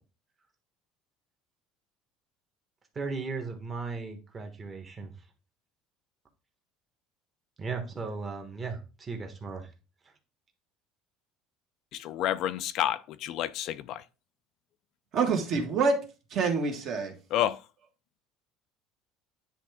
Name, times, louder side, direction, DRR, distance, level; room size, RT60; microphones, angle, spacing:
voice 1, 2.9-5.1 7.6-9.7, right 4 dB, 20° right, 1.3 m, -36 dB
voice 2, 11.9-14.0 17.3-17.6, left 12 dB, 55° left, 0.4 m, -29 dB
voice 3, 15.1-16.0 16.3-17.1, right 4 dB, 45° right, 1.6 m, -26 dB
10.0 x 3.3 x 3.5 m
cardioid pair, 150°, 0 cm